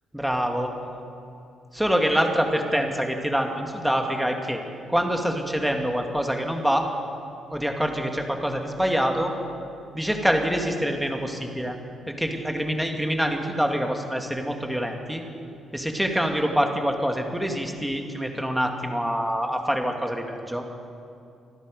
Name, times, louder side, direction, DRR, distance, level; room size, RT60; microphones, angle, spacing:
voice 1, 0.1-0.7 1.7-4.6 4.9-6.9 7.5-9.3 9.9-11.8 12.1-15.2 15.7-20.6, equal, 5° right, 3 dB, 1.9 m, -25 dB
26.0 x 10.0 x 5.3 m, 2.6 s
cardioid pair, 90°, 0 cm